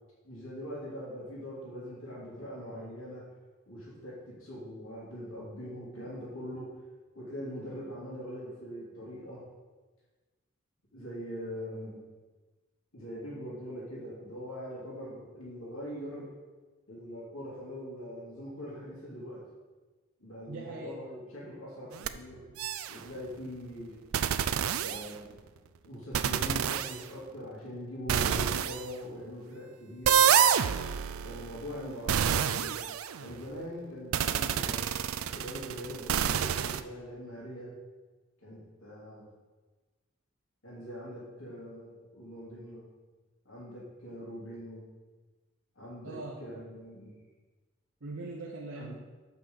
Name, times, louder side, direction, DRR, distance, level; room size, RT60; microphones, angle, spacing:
voice 1, 0.2-3.2 3.7-6.7 7.1-9.5 10.9-12.0 12.9-16.3 16.9-19.4 20.2-22.4 22.9-24.0 24.7-25.4 25.8-30.4 31.2-32.8 33.2-34.9 35.3-37.7 38.4-39.2 40.6-42.8 43.4-44.8 45.7-47.2 48.7-48.9, equal, 75° left, -6 dB, 2.9 m, -42 dB
voice 2, 20.5-21.0 46.0-46.4 48.0-48.9, right 2 dB, 65° right, -2 dB, 0.9 m, -41 dB
sound 1, 21.9-22.1 22.6-23.0 24.1-25.4 26.1-27.0 28.1-28.8 30.1-33.4 34.1-36.8, right 8 dB, 85° right, 0.4 m, -28 dB
6.1 x 5.8 x 7.0 m, 1.3 s
head